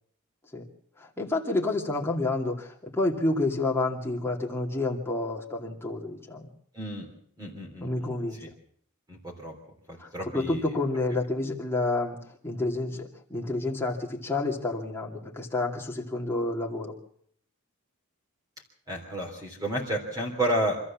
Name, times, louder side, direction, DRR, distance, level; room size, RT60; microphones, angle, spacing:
voice 1, 1.0-6.5 7.8-8.4 10.0-16.9, left 2 dB, 10° left, -2 dB, 2.5 m, -29 dB
voice 2, 6.7-7.1 7.4-8.1 9.1-9.5 9.9-10.7 18.9-20.8, right 1 dB, 15° right, -1 dB, 3.3 m, -31 dB
25.5 x 14.0 x 7.4 m, 0.66 s
head